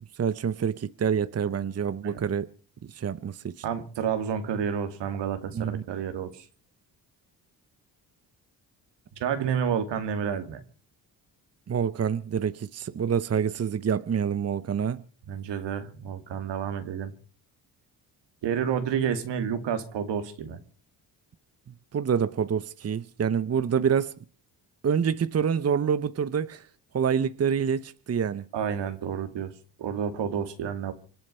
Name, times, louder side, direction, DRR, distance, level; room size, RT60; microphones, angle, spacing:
voice 1, 0.2-2.5 2.9-3.6 5.5-5.8 11.7-15.0 21.9-24.1 24.8-26.7 26.9-28.5, right 7 dB, 35° right, 0.8 m, -27 dB
voice 2, 3.6-6.4 9.2-10.6 15.3-17.1 18.4-20.6 28.5-29.5 29.8-30.9, right 8 dB, 80° right, 2.3 m, -30 dB
26.5 x 9.5 x 5.6 m
supercardioid pair, 65°, 42 cm